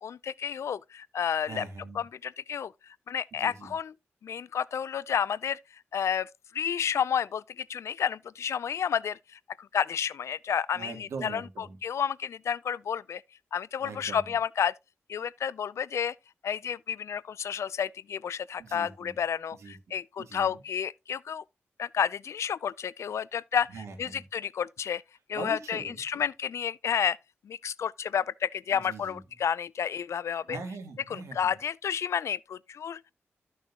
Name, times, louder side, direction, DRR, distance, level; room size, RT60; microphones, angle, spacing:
voice 1, 0.0-1.6 1.9-2.7 3.1-3.9 4.2-5.6 5.9-9.2 9.6-13.2 13.5-14.7 15.1-16.1 16.4-21.4 21.8-25.0 25.3-27.2 27.4-30.6 31.1-33.0, left 8 dB, 80° left, 0.4 m, -31 dB
voice 2, 1.5-2.0 3.4-3.7 10.7-11.8 13.8-14.3 18.6-19.1 19.6-19.8 20.2-20.5 23.7-24.2 25.3-26.0 28.7-29.2 30.5-31.5, right 4 dB, 85° right, 2.8 m, -42 dB
13.5 x 6.2 x 2.8 m
wide cardioid pair, 90°, 5 cm